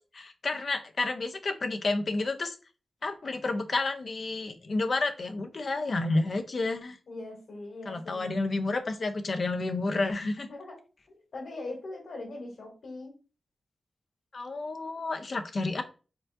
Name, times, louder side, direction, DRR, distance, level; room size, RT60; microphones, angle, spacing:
voice 1, 0.1-2.6 3.0-7.0 7.9-10.5 14.3-15.8, left 2 dB, 45° left, 7 dB, 0.6 m, -30 dB
voice 2, 7.1-8.2 10.5-10.7 11.1-13.1, left 2 dB, 75° left, -3 dB, 2.2 m, -41 dB
4.6 x 3.7 x 2.6 m, 0.34 s
wide cardioid pair, 160°, 0 cm